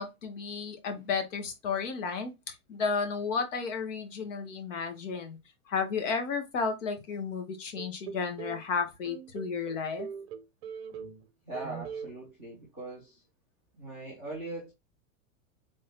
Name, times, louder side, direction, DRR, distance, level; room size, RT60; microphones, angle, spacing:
voice 1, 0.0-5.4 5.7-10.1, left 5 dB, 65° left, 1.3 m, -33 dB
sound 1, 7.8-8.6 9.0-11.3 11.5-12.1, right 7 dB, 50° right, 0.6 m, -41 dB
voice 2, 11.5-13.2 13.8-14.7, right 2 dB, 10° left, 0.3 m, -41 dB
3.6 x 2.7 x 3.5 m
supercardioid pair, 180°, 40 cm